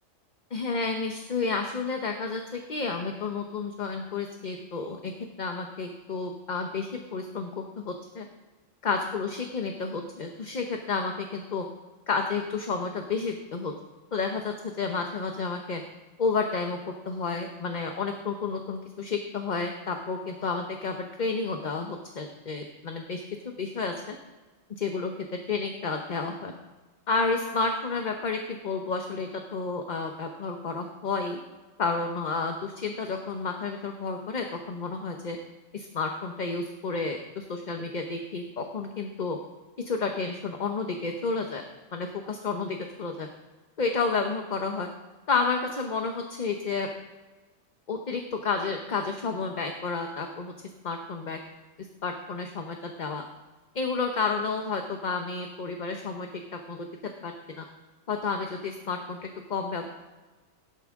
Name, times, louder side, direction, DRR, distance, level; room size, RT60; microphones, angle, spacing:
voice 1, 0.5-5.1 5.4-8.3 8.8-11.7 12.1-13.7 14.1-15.8 16.2-24.2 24.7-26.5 27.1-31.4 31.8-35.4 35.7-39.4 39.8-41.6 41.9-43.3 43.8-44.9 45.3-46.9 47.9-50.5 50.8-51.4 52.0-53.2 53.7-57.6 58.1-59.9, left 4 dB, 40° left, 4 dB, 0.9 m, -31 dB
16.5 x 11.0 x 3.6 m, 1.2 s
omnidirectional pair, 1.3 m